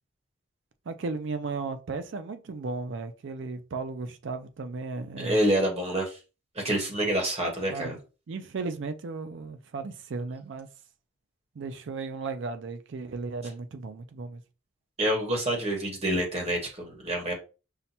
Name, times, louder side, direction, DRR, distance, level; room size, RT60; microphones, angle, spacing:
voice 1, 0.9-5.4 7.7-8.0 8.3-10.7 11.6-14.4, right 4 dB, 65° right, 0.4 m, -35 dB
voice 2, 5.2-6.2 6.5-8.0 15.0-17.3, right 1 dB, 30° right, 1.1 m, -27 dB
5.6 x 2.2 x 2.8 m
head